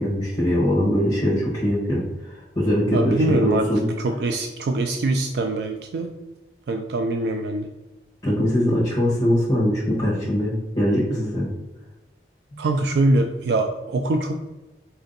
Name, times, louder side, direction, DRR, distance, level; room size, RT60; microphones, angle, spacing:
voice 1, 0.0-3.9 8.2-11.5 12.5-12.6, equal, 25° left, -6 dB, 0.9 m, -22 dB
voice 2, 2.9-3.7 4.0-6.1 6.7-7.7 12.6-14.4, right 2 dB, 65° right, 4 dB, 0.3 m, -23 dB
4.3 x 2.6 x 3.8 m, 1.1 s
head